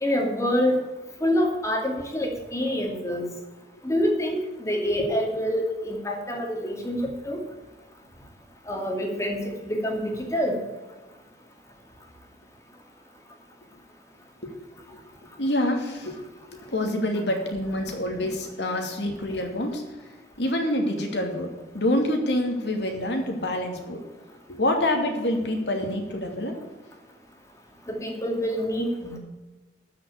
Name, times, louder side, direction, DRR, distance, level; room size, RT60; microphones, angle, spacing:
voice 1, 0.0-0.8 1.2-3.2 3.8-7.4 8.7-9.4 9.8-10.6 27.9-29.2, equal, 15° left, 2 dB, 2.4 m, -26 dB
voice 2, 15.4-16.2 16.7-19.8 20.4-21.5 21.7-24.0 24.5-26.5, left 1 dB, 80° left, 3 dB, 2.7 m, -26 dB
13.0 x 6.1 x 8.3 m, 1.2 s
head